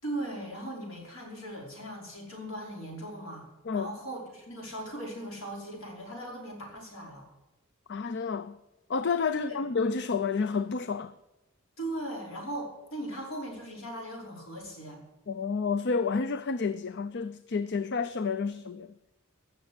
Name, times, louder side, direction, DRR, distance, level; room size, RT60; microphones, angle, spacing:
voice 1, 0.0-3.5 3.7-7.3 9.3-9.6 11.8-15.0, right 1 dB, 75° left, 5.3 m, -38 dB
voice 2, 7.9-8.6 8.9-11.1 15.3-18.9, left 5 dB, 55° left, 0.5 m, -30 dB
16.0 x 6.9 x 8.1 m
head